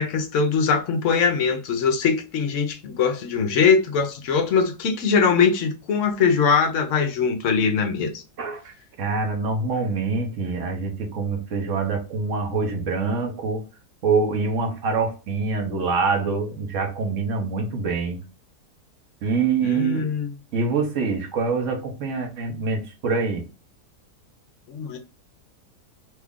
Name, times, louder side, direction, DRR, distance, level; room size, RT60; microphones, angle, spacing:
voice 1, 0.0-8.2 19.6-20.3 24.7-25.0, left 5 dB, 65° left, 0.8 m, -21 dB
voice 2, 8.4-13.6 14.0-18.2 19.2-20.1 20.5-23.4, right 4 dB, 60° right, 0.9 m, -25 dB
3.0 x 2.3 x 3.5 m
omnidirectional pair, 1.7 m